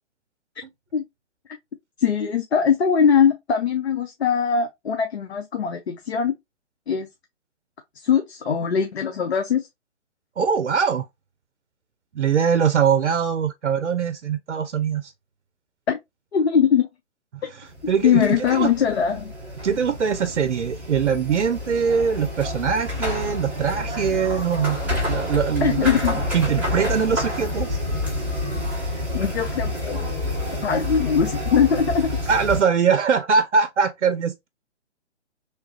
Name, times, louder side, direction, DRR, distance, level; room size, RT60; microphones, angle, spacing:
voice 1, 2.0-6.3 6.9-7.1 7.9-9.7 15.9-16.0 16.3-16.9 18.0-19.3 25.6-26.2 28.7-30.2 30.6-32.2, left 7 dB, 65° left, 0.6 m, -21 dB
voice 2, 10.4-11.1 12.1-15.1 17.6-18.7 19.6-24.8 25.1-25.9 26.3-27.8 32.3-34.5, right 6 dB, 75° right, 0.5 m, -22 dB
sound 1, 17.7-32.6, left 1 dB, 5° right, 0.8 m, -28 dB
3.1 x 2.3 x 2.9 m
figure-of-eight pair, 130°, 35 cm